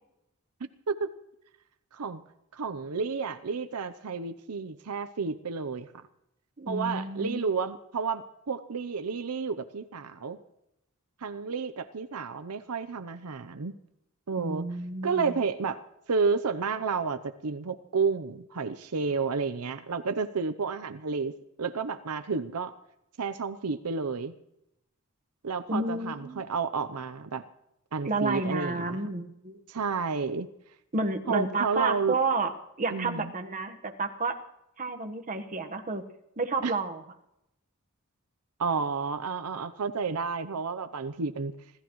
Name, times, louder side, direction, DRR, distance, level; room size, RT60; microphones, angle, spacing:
voice 1, 1.9-2.2 2.5-5.9 6.7-10.4 11.2-13.7 14.3-14.7 15.0-15.8 16.1-21.3 21.6-22.7 23.2-24.3 25.4-27.4 27.9-29.0 29.7-30.5 31.3-32.1 32.9-33.3 36.6-36.7 38.6-41.5, right 5 dB, 90° right, 10 dB, 0.7 m, -31 dB
voice 2, 6.6-7.5 14.4-15.4 25.7-26.5 28.0-29.6 30.9-32.5 32.8-34.4 34.8-36.0 36.4-37.0, right 3 dB, 35° right, 5 dB, 1.3 m, -30 dB
25.5 x 14.0 x 3.1 m, 0.83 s
head